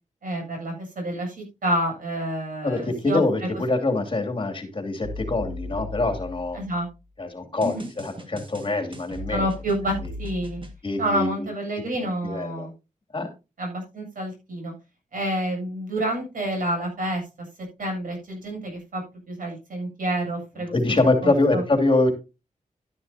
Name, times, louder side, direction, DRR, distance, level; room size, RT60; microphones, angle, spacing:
voice 1, 0.2-3.2 6.5-6.9 7.6-7.9 9.3-10.6 11.0-12.7 13.6-14.7 15.1-17.2 17.8-19.0 19.3-20.7 21.2-21.6, right 1 dB, 80° right, 2 dB, 7.8 m, -28 dB
voice 2, 2.6-6.6 7.2-9.5 10.0-10.1 10.8-11.5 12.2-12.7 13.1-13.3 20.7-22.1, left 2 dB, 40° left, 4 dB, 2.8 m, -24 dB
sound 1, 5.0-6.9 7.6-10.7, left 1 dB, 35° right, 1.9 m, -37 dB
11.5 x 11.0 x 2.8 m, 0.28 s
wide cardioid pair, 95°, 14 cm